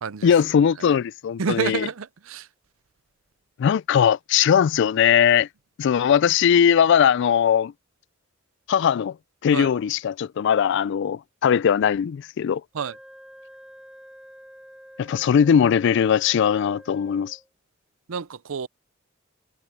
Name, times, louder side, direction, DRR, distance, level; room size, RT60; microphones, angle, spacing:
voice 1, 0.2-1.9 3.6-5.5 5.8-7.7 8.7-9.2 9.4-12.6 15.0-17.4, left 8 dB, 60° left, 0.3 m, -20 dB
voice 2, 1.4-2.4 9.5-9.7 12.7-12.9 18.1-18.7, right 6 dB, 90° right, 0.6 m, -28 dB
Wind instrument woodwind instrument, 12.7-17.5, equal, 5° right, 7.1 m, -47 dB
head